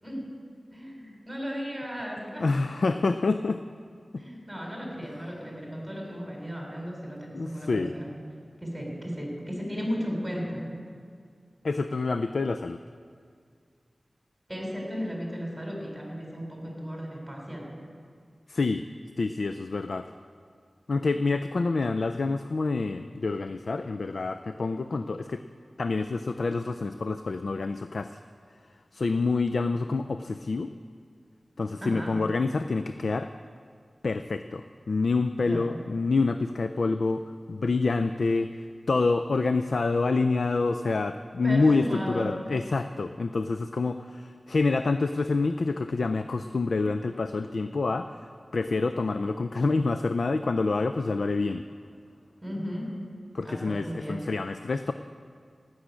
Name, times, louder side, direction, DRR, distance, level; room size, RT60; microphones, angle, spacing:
voice 1, 0.0-0.3 0.7-2.5 4.2-8.1 8.6-10.6 14.5-17.7 31.8-32.2 35.4-35.7 41.4-42.3 52.4-53.0 53.4-54.3, equal, 15° right, -1 dB, 3.9 m, -35 dB
voice 2, 2.4-3.6 7.3-7.9 11.6-12.8 18.5-18.8 19.2-20.1 20.9-25.4 25.8-28.2 28.9-30.7 31.6-33.3 34.0-37.2 37.5-38.5 38.9-51.7 53.3-54.9, left 3 dB, 75° left, 9 dB, 0.4 m, -27 dB
17.5 x 6.4 x 8.3 m, 2.2 s
wide cardioid pair, 75°, 0 cm